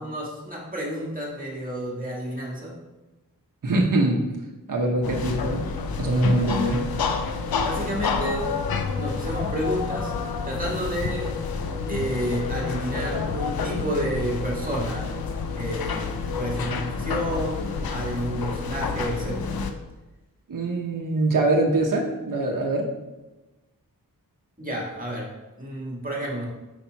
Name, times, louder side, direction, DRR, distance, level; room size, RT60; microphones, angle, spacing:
voice 1, 0.0-2.8 7.6-8.5 8.9-10.1 10.4-11.3 11.9-15.1 15.5-19.5 24.6-25.3 25.6-26.5, equal, 25° right, -3 dB, 1.6 m, -30 dB
voice 2, 3.6-4.2 4.7-5.6 6.0-6.8 20.5-22.9, right 2 dB, 65° right, 1 dB, 0.9 m, -23 dB
sound 1, 5.0-19.7, left 4 dB, 85° left, 0.6 m, -29 dB
5.0 x 4.2 x 4.5 m, 1.1 s
wide cardioid pair, 75°, 35 cm